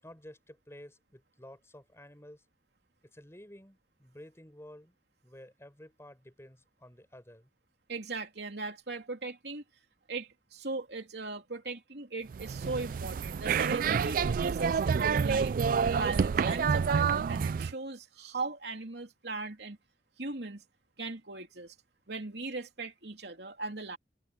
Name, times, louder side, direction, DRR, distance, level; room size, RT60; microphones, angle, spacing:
voice 1, 0.0-2.4 3.0-4.9 5.2-7.5, left 1 dB, 15° left, 6.9 m, -52 dB
voice 2, 7.9-9.6 10.1-15.6 15.9-19.8 20.2-20.6 21.0-21.7 22.1-24.0, right 3 dB, 65° right, 3.1 m, -38 dB
sound 1, 12.3-17.7, right 6 dB, 50° right, 0.3 m, -28 dB
head